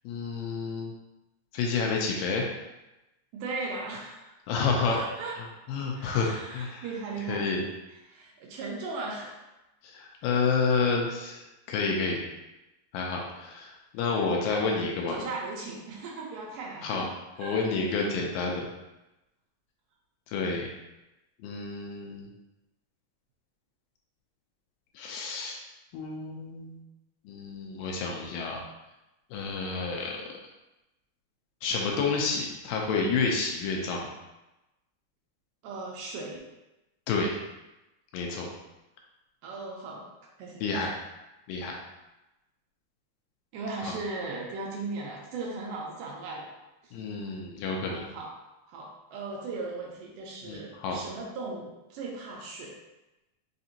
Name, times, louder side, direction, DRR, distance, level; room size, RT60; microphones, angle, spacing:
voice 1, 0.0-0.9 1.5-2.5 4.5-5.0 5.4-6.9 7.3-7.6 9.8-11.4 11.7-12.2 12.9-15.2 16.8-17.1 17.4-18.7 20.3-20.7 21.4-22.3 25.0-25.6 25.9-26.8 27.3-28.6 29.3-30.3 31.6-34.1 37.1-37.4 38.1-38.5 40.6-41.0 41.5-41.8 43.8-43.9 46.9-48.0 50.4-51.0, left 4 dB, 80° left, 0 dB, 2.2 m, -29 dB
voice 2, 3.3-4.3 4.9-5.3 5.9-7.4 8.1-9.4 15.1-17.0 17.4-17.6 17.9-18.0 35.6-36.5 39.4-40.1 40.4-40.8 43.5-46.5 46.8-46.9 47.8-48.3 48.7-52.7, right 3 dB, 80° right, -3 dB, 2.1 m, -37 dB
5.7 x 2.6 x 2.7 m, 0.98 s
omnidirectional pair, 4.1 m